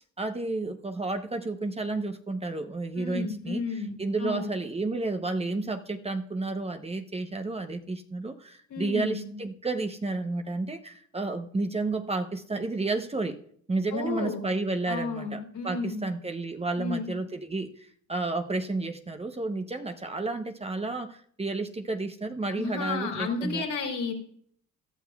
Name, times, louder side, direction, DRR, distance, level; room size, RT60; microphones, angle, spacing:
voice 1, 0.2-13.4 13.7-23.6, right 3 dB, 20° right, 6 dB, 0.8 m, -31 dB
voice 2, 3.0-4.5 8.7-9.3 13.9-14.5 14.8-16.1 16.8-17.1 22.5-24.1, left 4 dB, 70° left, 1 dB, 3.2 m, -32 dB
17.5 x 12.0 x 2.3 m, 0.62 s
cardioid pair, 90°, 30 cm